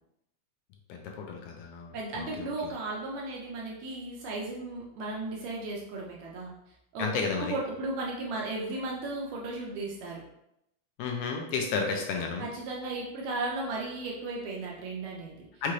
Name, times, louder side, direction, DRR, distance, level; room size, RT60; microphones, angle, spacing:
voice 1, 0.9-2.5 7.0-7.5 11.0-12.4 15.6-15.7, left 5 dB, 80° left, 2 dB, 1.9 m, -32 dB
voice 2, 1.9-6.5 6.9-10.2 12.4-15.5, right 2 dB, 75° right, -3 dB, 1.7 m, -35 dB
5.6 x 2.6 x 3.0 m, 0.83 s
omnidirectional pair, 3.6 m